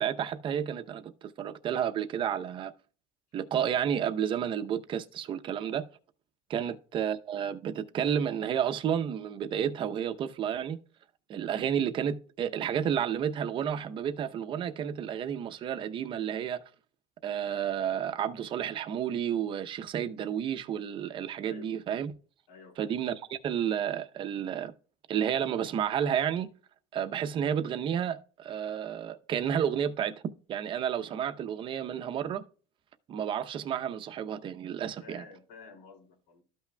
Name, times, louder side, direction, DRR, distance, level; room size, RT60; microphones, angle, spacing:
voice 1, 0.0-2.7 3.3-5.8 6.5-10.8 11.3-16.6 17.2-22.1 22.8-24.7 25.1-26.5 26.9-30.1 30.5-32.4 33.1-35.2, right 9 dB, 35° right, 0.7 m, -31 dB
voice 2, 21.4-21.7 22.5-23.0 35.0-36.4, left 4 dB, 90° left, 2.6 m, -51 dB
13.5 x 5.8 x 2.2 m
cardioid pair, 155°, 15 cm